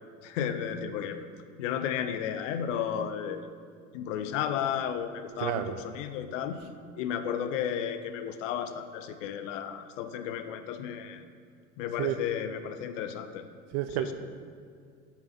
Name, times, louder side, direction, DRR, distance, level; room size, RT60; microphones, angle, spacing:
voice 1, 0.2-1.3 1.6-3.4 3.9-6.6 7.0-11.2 11.8-13.4 14.0-14.1, left 9 dB, 55° left, 9 dB, 0.6 m, -33 dB
voice 2, 5.4-5.8 12.0-12.2 13.7-14.1, right 12 dB, 40° right, 9 dB, 0.4 m, -30 dB
5.5 x 4.6 x 5.7 m, 2.2 s
figure-of-eight pair, 70°, 44 cm